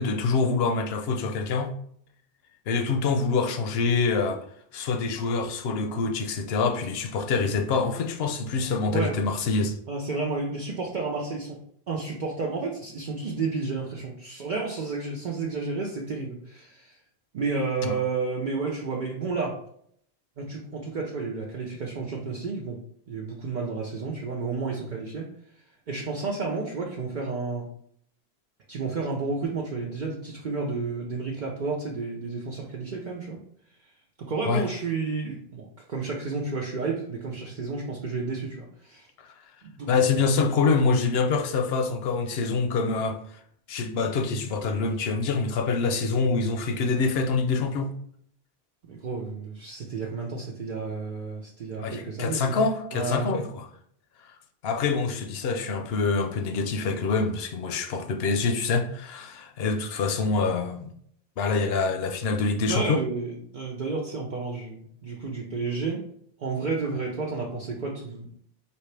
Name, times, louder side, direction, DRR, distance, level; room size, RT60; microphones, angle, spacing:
voice 1, 0.0-1.7 2.7-4.4 4.7-9.8 17.8-18.0 34.5-34.7 39.2-39.3 39.9-43.4 43.7-47.9 51.8-53.7 54.2-54.4 54.6-60.9 61.4-63.0, left 4 dB, 75° left, 0.9 m, -26 dB
voice 2, 9.9-11.6 11.9-17.0 17.3-19.6 20.4-22.8 23.1-25.3 25.9-27.7 28.7-33.4 34.2-39.1 39.6-40.0 48.9-52.6 52.9-53.5 62.7-66.0 66.4-68.4, right 4 dB, 55° right, 0.8 m, -31 dB
5.1 x 2.8 x 3.3 m
omnidirectional pair, 1.0 m